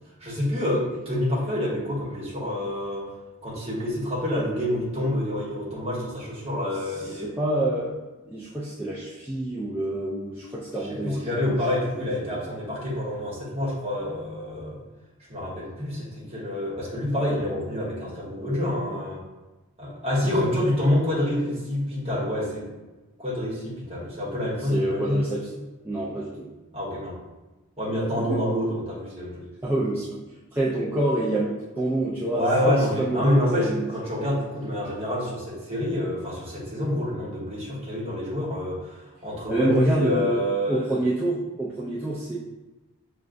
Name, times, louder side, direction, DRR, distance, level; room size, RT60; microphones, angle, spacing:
voice 1, 0.2-3.1 3.4-7.3 10.8-14.8 15.3-19.2 19.8-22.7 23.2-25.3 26.7-27.2 27.8-29.5 32.3-41.0, left 1 dB, 30° right, -6 dB, 1.2 m, -27 dB
voice 2, 7.2-8.0 8.2-11.6 11.9-12.5 20.2-20.6 24.7-25.5 25.8-26.5 28.3-28.4 29.6-30.2 30.5-33.9 39.5-42.4, right 1 dB, 10° right, -6 dB, 0.3 m, -27 dB
5.9 x 2.2 x 2.5 m, 1.1 s
head